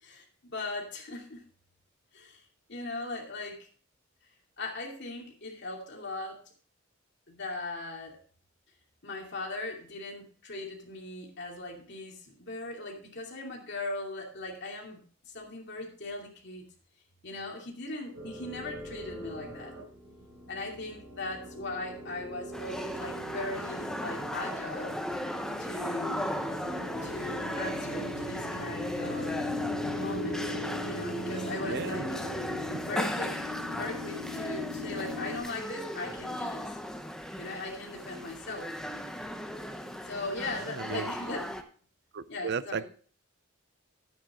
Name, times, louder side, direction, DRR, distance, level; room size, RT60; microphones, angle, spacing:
voice 1, 0.0-1.4 2.1-2.4 2.7-3.6 4.6-6.4 7.3-8.2 9.0-16.6 17.2-19.7 20.5-25.0 25.6-26.3 27.0-29.4 30.0-30.5 30.8-32.2 32.8-33.4 33.7-36.7 37.4-38.7 40.0-41.6 42.3-42.8, left 2 dB, 60° left, 2.6 m, -39 dB
sound 1, 18.1-35.4, left 1 dB, 75° right, 4.6 m, -40 dB
sound 2, 22.5-41.6, equal, 5° left, 0.8 m, -37 dB
voice 2, 31.6-32.1 32.7-32.8 40.6-41.1 42.1-42.8, right 5 dB, 55° right, 0.5 m, -35 dB
10.5 x 8.7 x 3.7 m
head